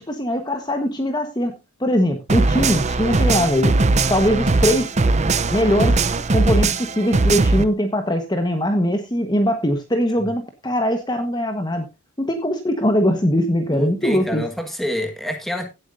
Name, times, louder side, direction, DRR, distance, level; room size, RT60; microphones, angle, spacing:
voice 1, 0.0-1.5 1.8-3.8 4.1-4.9 5.5-6.0 6.3-11.8 12.2-14.4, equal, 20° left, 1.3 m, -21 dB
sound 1, 2.3-7.6, right 3 dB, 30° right, 0.6 m, -19 dB
voice 2, 13.7-15.7, equal, ahead, 1.6 m, -27 dB
17.0 x 8.1 x 2.6 m
head